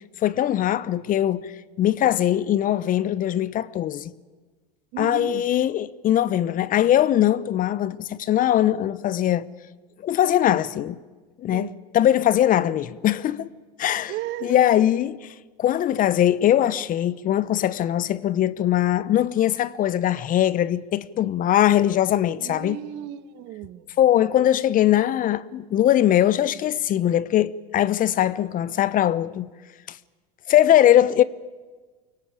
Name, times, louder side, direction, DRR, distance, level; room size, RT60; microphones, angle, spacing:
voice 1, 0.0-4.1 5.0-9.4 10.0-11.0 11.4-13.5 13.8-14.1 14.4-22.8 24.0-29.5 29.9-30.0 30.5-31.2, left 12 dB, 40° left, 0.8 m, -21 dB
voice 2, 4.9-5.4 11.5-11.8 14.1-14.6 22.4-23.9, right 13 dB, 60° right, 1.3 m, -34 dB
24.0 x 17.5 x 8.8 m
hypercardioid pair, 95°, 21 cm